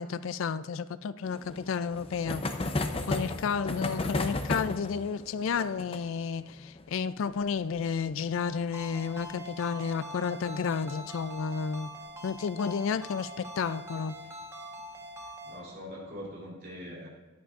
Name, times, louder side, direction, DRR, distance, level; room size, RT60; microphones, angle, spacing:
voice 1, 0.0-2.4 3.1-11.9 12.2-14.2, left 6 dB, 65° left, 15 dB, 0.3 m, -31 dB
sound 1, 1.2-10.5 10.7-10.8 11.0-11.1 11.4-11.5 12.9-13.2 13.9-14.3, left 2 dB, 25° left, 0.6 m, -35 dB
Ringtone, 8.7-15.6, equal, 15° right, 1.2 m, -44 dB
voice 2, 15.4-17.1, equal, 45° right, -4 dB, 3.0 m, -42 dB
13.5 x 11.0 x 2.5 m, 1.2 s
head